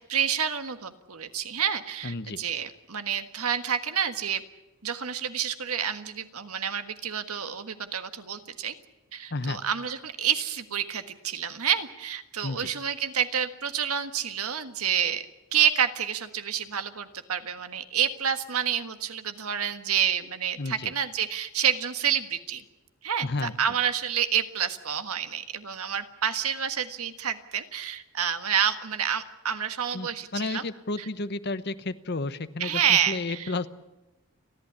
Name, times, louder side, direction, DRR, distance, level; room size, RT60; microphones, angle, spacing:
voice 1, 0.1-4.4 4.8-8.7 9.1-15.2 15.5-22.6 23.0-30.6 31.0-31.1 32.6-33.5, right 8 dB, 90° right, 9 dB, 1.6 m, -28 dB
voice 2, 2.0-2.4 9.3-9.6 12.4-12.7 20.6-20.9 23.2-23.5 29.9-33.7, left 3 dB, 50° left, 13 dB, 0.9 m, -32 dB
30.0 x 11.5 x 9.8 m, 1.0 s
head